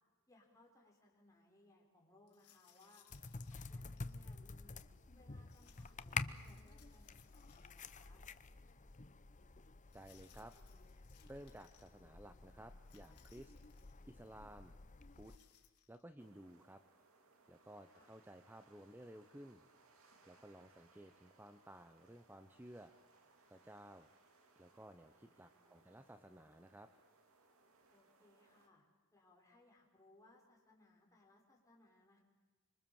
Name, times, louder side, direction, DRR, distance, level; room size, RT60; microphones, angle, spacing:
voice 1, 0.3-3.0 3.5-4.8 5.2-8.2 17.9-18.1 25.5-26.1 27.9-28.8 29.1-32.2, left 2 dB, 15° left, -1 dB, 5.6 m, -68 dB
sound 1, 2.3-4.2 5.5-8.0 8.3-8.4 9.9-11.9 12.8-14.0 15.0-16.0, left 10 dB, 90° left, 3.0 m, -70 dB
sound 2, 3.1-15.4, left 4 dB, 35° left, 0.9 m, -49 dB
voice 2, 9.9-10.5 11.2-13.5 14.1-14.8 15.1-15.3 15.9-16.8 17.5-19.6 20.2-22.9 23.5-24.1 24.6-26.9, right 1 dB, 10° right, 8 dB, 0.9 m, -56 dB
sound 3, 16.2-28.7, right 3 dB, 65° right, 2.7 m, -70 dB
25.5 x 25.0 x 7.2 m, 1.3 s
head